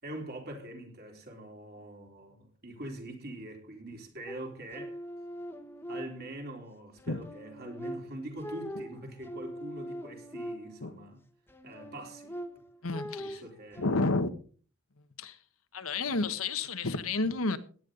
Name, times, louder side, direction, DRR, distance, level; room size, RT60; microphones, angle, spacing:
voice 1, 0.0-5.0 5.9-11.2 11.6-12.3 13.2-13.9, right 1 dB, 50° right, 3.7 m, -43 dB
sound 1, 4.3-6.6 7.0-11.0 11.5-13.9, equal, 10° left, 1.1 m, -42 dB
voice 2, 12.8-13.4 13.8-14.3 15.2-15.4 15.7-17.6, left 3 dB, 90° left, 1.3 m, -30 dB
17.0 x 10.5 x 3.9 m
head